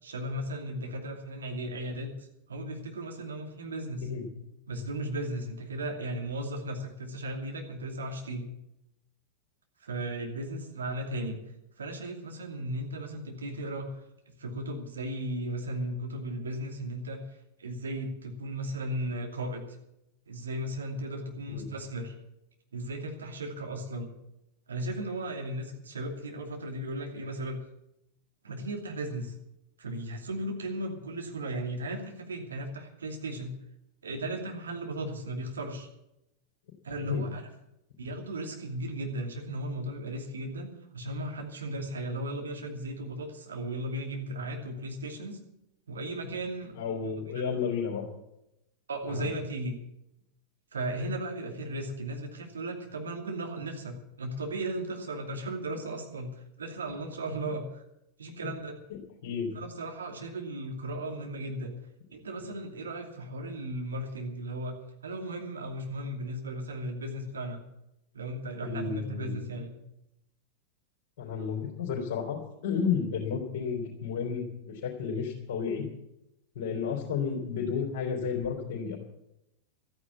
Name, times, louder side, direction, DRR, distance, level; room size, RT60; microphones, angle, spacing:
voice 1, 0.0-4.1 4.7-8.5 9.8-11.4 11.8-17.2 17.6-19.7 20.3-22.1 22.7-24.1 24.7-27.6 28.4-29.4 29.8-33.6 34.0-35.9 36.8-37.4 38.0-45.4 45.9-47.5 48.9-49.7 50.7-57.8 58.2-58.8 59.5-61.7 62.1-67.6 68.1-69.7, right 1 dB, 70° right, 2 dB, 2.7 m, -36 dB
voice 2, 46.8-48.1 49.1-49.3 59.2-59.5 68.6-69.3 71.2-72.4 72.6-75.8 76.5-79.0, left 6 dB, 55° left, -1 dB, 3.3 m, -32 dB
13.5 x 9.7 x 8.4 m, 0.85 s
figure-of-eight pair, 90°, 0 cm